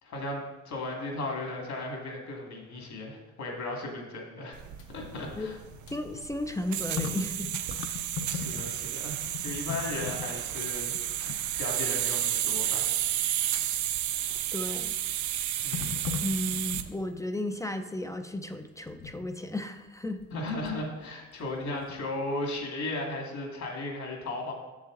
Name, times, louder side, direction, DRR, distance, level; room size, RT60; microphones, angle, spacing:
voice 1, 0.0-4.6 4.9-5.6 7.7-7.8 8.3-10.9 11.2-12.9 15.6-16.1 20.3-24.5, left 2 dB, 65° left, 1 dB, 2.1 m, -36 dB
sound 1, 4.5-16.9, right 12 dB, 75° right, 0.5 m, -32 dB
sound 2, 4.6-8.9 9.2-12.0 12.5-12.6 14.3-14.8 15.7-17.2 18.9-19.3 20.2-20.9 21.3-22.3 22.6-22.7, left 6 dB, 50° left, 0.8 m, -40 dB
voice 2, 5.9-7.5 14.5-15.0 16.2-20.3, left 1 dB, 10° left, 7 dB, 0.4 m, -34 dB
7.3 x 7.0 x 3.8 m, 1.2 s
cardioid pair, 90°, 30 cm